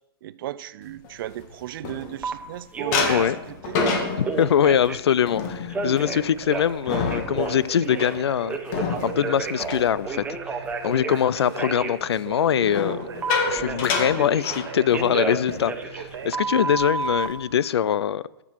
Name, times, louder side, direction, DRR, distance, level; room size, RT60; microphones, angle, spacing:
voice 1, 0.2-3.8, right 12 dB, 55° right, 0.4 m, -35 dB
sound 1, 1.0-2.5 2.9-10.7 11.1-11.4 12.6-15.2 15.5-15.7 16.0-16.3 16.8-17.4, left 4 dB, 45° left, 1.8 m, -30 dB
Telephone, 2.2-2.3 2.7-3.4 3.7-5.1 5.7-8.2 8.5-11.2 11.6-11.9 13.2-14.6 14.9-17.3, right 4 dB, 10° right, 0.8 m, -31 dB
voice 2, 4.2-10.2 10.8-13.0 13.5-18.2, left 9 dB, 85° left, 0.4 m, -23 dB
Conversation, 6.3-16.8, right 6 dB, 80° right, 1.6 m, -38 dB
13.0 x 6.1 x 4.6 m
hypercardioid pair, 130°, 13 cm